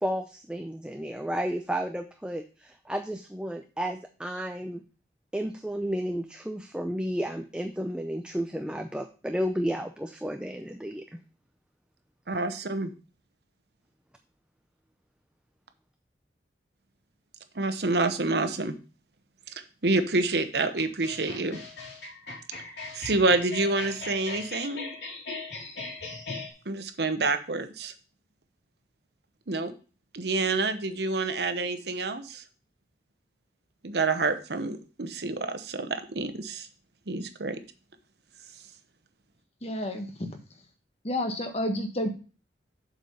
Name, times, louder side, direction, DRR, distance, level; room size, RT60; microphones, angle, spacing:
voice 1, 0.0-4.8 5.3-11.0, equal, 5° right, 5 dB, 0.5 m, -32 dB
voice 2, 12.3-12.9 17.5-18.7 19.8-21.6 22.9-25.0 26.7-27.9 29.5-29.7 30.1-32.4 33.8-36.7 37.1-37.6, right 3 dB, 70° right, 10 dB, 0.9 m, -28 dB
sound 1, 20.8-26.5, left 3 dB, 85° left, 2.8 m, -39 dB
voice 3, 39.6-40.1 41.0-42.1, left 1 dB, 35° left, 5 dB, 1.3 m, -30 dB
7.6 x 5.3 x 5.4 m, 0.36 s
head